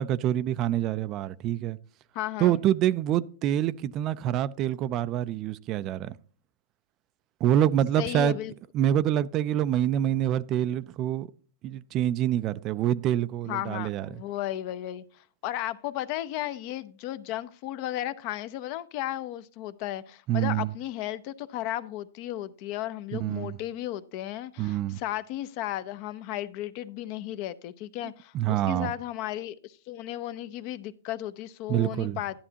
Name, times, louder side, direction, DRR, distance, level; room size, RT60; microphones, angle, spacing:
voice 1, 0.0-1.8 2.4-6.2 7.4-8.4 8.7-11.3 11.6-14.1 20.3-20.7 23.2-23.6 24.6-25.0 28.3-28.9 31.7-32.2, right 11 dB, 30° right, 0.3 m, -26 dB
voice 2, 2.1-2.6 8.0-8.5 13.5-32.4, left 13 dB, 40° left, 0.6 m, -34 dB
11.0 x 10.5 x 2.8 m
hypercardioid pair, 150°, 0 cm